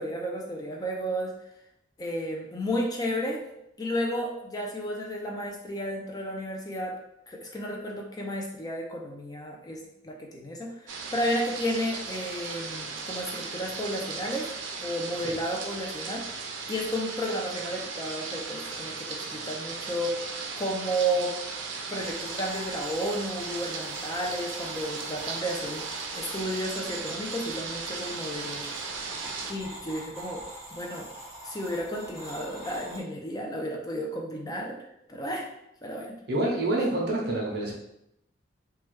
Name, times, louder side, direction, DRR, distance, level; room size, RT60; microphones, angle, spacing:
voice 1, 0.0-1.3 2.0-3.4 3.8-7.0 7.3-14.5 14.8-16.3 16.7-20.2 20.6-21.4 21.9-25.8 26.1-28.7 29.5-30.4 30.7-31.1 31.4-35.5 35.8-36.2, equal, 20° left, 0 dB, 0.4 m, -32 dB
sound 1, 10.9-29.5, right 4 dB, 85° right, 0.4 m, -37 dB
sound 2, 22.0-33.0, right 1 dB, 15° right, 0.8 m, -44 dB
voice 2, 36.3-37.7, right 1 dB, 60° right, -1 dB, 0.7 m, -27 dB
3.0 x 2.2 x 3.1 m, 0.80 s
head